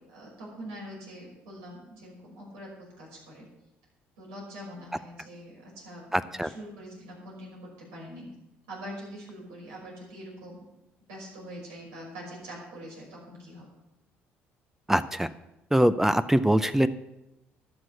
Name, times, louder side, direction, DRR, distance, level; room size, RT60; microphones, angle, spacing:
voice 1, 0.1-3.5 4.2-8.2 8.7-10.7 11.1-13.7, equal, 85° right, -3 dB, 5.7 m, -44 dB
voice 2, 6.1-6.5 14.9-15.3 15.7-16.9, right 1 dB, 5° right, 13 dB, 0.6 m, -23 dB
12.0 x 6.3 x 8.2 m, 0.92 s
supercardioid pair, 65°, 5 cm